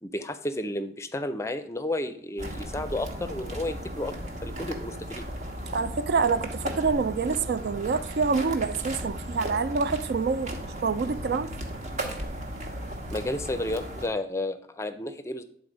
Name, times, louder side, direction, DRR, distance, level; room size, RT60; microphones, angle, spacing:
voice 1, 0.0-4.2 4.4-5.2 13.1-15.4, left 1 dB, 15° left, 0.5 m, -32 dB
sound 1, 2.4-14.1, equal, 45° right, 1.1 m, -36 dB
voice 2, 5.7-10.6 10.8-11.5, right 5 dB, 70° right, 0.4 m, -26 dB
9.3 x 4.0 x 5.0 m
head